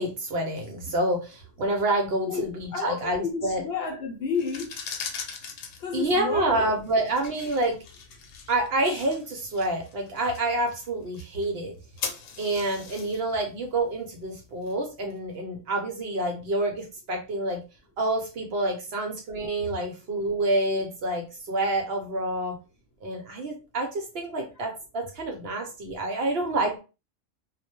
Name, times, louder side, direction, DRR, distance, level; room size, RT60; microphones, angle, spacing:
voice 1, 0.0-3.6 5.9-7.8 8.5-11.7 12.4-17.6 18.0-22.6 23.0-26.8, right 2 dB, 60° right, 0.7 m, -28 dB
voice 2, 2.3-4.9 5.8-6.7 24.6-24.7, left 5 dB, 60° left, 0.8 m, -31 dB
sound 1, 4.3-15.1, left 5 dB, 90° left, 1.0 m, -41 dB
2.3 x 2.1 x 2.9 m
omnidirectional pair, 1.3 m